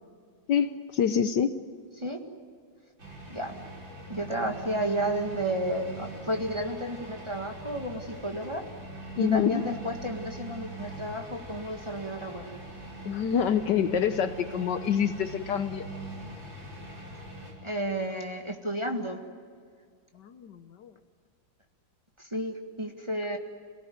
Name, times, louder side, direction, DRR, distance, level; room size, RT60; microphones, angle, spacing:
voice 1, 0.5-1.5 9.1-9.6 13.0-15.9 20.2-20.9, left 8 dB, 65° left, 10 dB, 1.4 m, -26 dB
sound 1, 3.0-17.5, right 2 dB, 70° right, 6.3 m, -42 dB
voice 2, 4.1-8.6 9.2-12.5 17.6-19.2 22.2-23.4, right 1 dB, 15° right, 2 dB, 1.7 m, -32 dB
27.5 x 18.0 x 9.5 m, 2.1 s
omnidirectional pair, 2.1 m